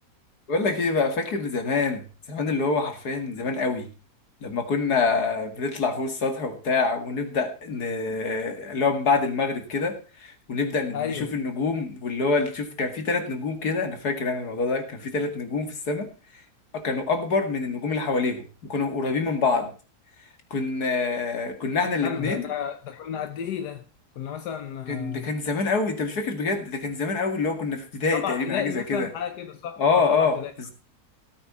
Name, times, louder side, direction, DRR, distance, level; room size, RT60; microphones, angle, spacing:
voice 1, 0.5-3.9 4.4-16.4 16.7-19.7 20.5-22.5 24.9-29.1 29.8-30.4, left 4 dB, 70° left, 2.8 m, -26 dB
voice 2, 10.9-11.3 22.0-23.9 24.2-25.3 28.1-30.5, left 8 dB, 90° left, 1.6 m, -32 dB
17.5 x 8.6 x 4.3 m
omnidirectional pair, 1.7 m